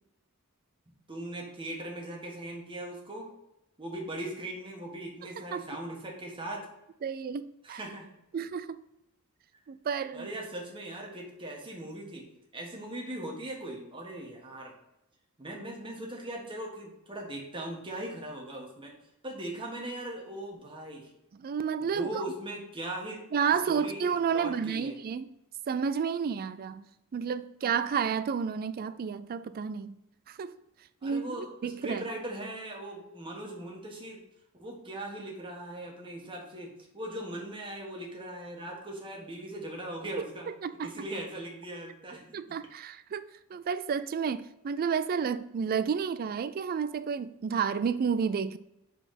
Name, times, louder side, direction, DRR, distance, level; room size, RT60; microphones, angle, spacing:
voice 1, 1.1-3.3 3.8-6.7 7.6-8.1 10.1-12.3 12.5-14.7 15.4-18.9 19.2-21.1 21.8-23.2 23.7-25.0 31.0-34.2 34.5-40.5 40.8-42.2, right 1 dB, 25° right, 1.4 m, -39 dB
voice 2, 7.0-7.8 8.3-8.8 9.7-10.3 21.4-22.2 23.3-25.3 25.7-26.8 27.1-30.0 30.3-30.5 31.0-32.0 40.6-41.1 42.3-43.2 43.5-48.6, right 6 dB, 40° right, 0.3 m, -31 dB
5.5 x 4.1 x 5.8 m
head